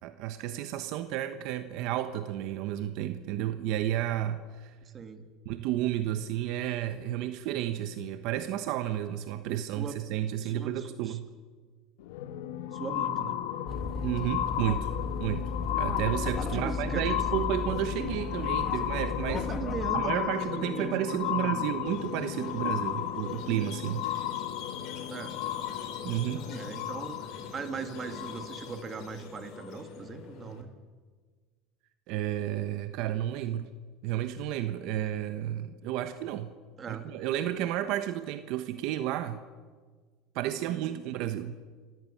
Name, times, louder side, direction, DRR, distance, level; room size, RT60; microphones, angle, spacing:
voice 1, 0.0-4.7 5.4-11.3 14.0-14.9 15.2-19.5 19.9-24.1 26.0-26.5 32.1-33.7 34.0-36.5 36.9-39.4 40.3-41.6, right 12 dB, 60° right, 9 dB, 1.2 m, -32 dB
voice 2, 4.9-5.3 9.5-10.0 10.4-11.2 12.7-13.4 16.5-17.2 19.5-21.8 25.1-25.4 26.4-30.7 36.8-37.1, right 5 dB, 25° right, 7 dB, 2.3 m, -39 dB
sound 1, 12.0-28.9 29.6-29.7, left 11 dB, 85° left, 1.4 m, -34 dB
sound 2, 13.7-19.9, left 4 dB, 25° left, 1.8 m, -35 dB
Squeak, 21.8-30.6, left 5 dB, 55° left, 3.5 m, -45 dB
27.0 x 14.5 x 8.7 m, 1.5 s
cardioid pair, 140°, 0 cm